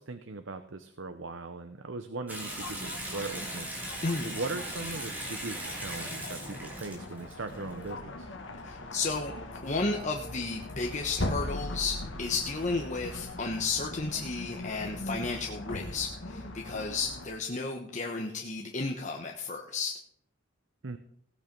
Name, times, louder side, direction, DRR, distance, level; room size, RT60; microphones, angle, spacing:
voice 1, 0.0-8.3 20.8-21.0, right 3 dB, 75° right, 8 dB, 0.8 m, -39 dB
Water tap faucet / Sink (filling or washing) / Bathtub (filling or washing), 2.3-7.9, right 1 dB, 10° right, 3.2 m, -39 dB
sound 1, 2.5-17.3, left 1 dB, 70° left, 1.7 m, -40 dB
voice 2, 8.6-9.3 9.6-20.0, left 3 dB, 40° left, 2 dB, 1.1 m, -33 dB
16.5 x 8.5 x 5.3 m, 0.64 s
head